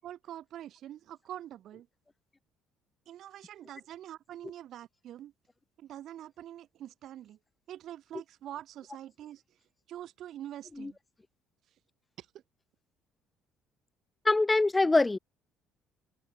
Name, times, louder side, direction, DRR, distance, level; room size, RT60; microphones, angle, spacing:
voice 1, 0.0-1.9 3.1-5.3 5.8-7.4 7.7-9.6 9.9-11.0 12.2-12.3, right 12 dB, 60° right, 5.9 m, -45 dB
voice 2, 14.2-15.2, left 2 dB, 20° left, 1.4 m, -24 dB
hypercardioid pair, 55°, 0 cm